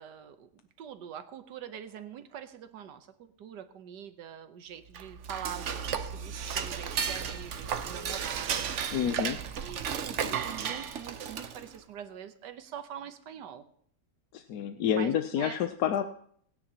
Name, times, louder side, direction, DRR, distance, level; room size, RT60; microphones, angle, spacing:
voice 1, 0.0-9.3 9.6-13.6 14.9-15.6, right 9 dB, 70° right, 10 dB, 1.5 m, -44 dB
Dishes pots and pans / Cutlery silverware, 4.9-11.8, right 7 dB, 55° right, 0.9 m, -34 dB
voice 2, 8.9-9.4 14.3-16.0, left 9 dB, 65° left, 8 dB, 1.1 m, -28 dB
27.0 x 9.6 x 2.9 m, 0.63 s
omnidirectional pair, 1.9 m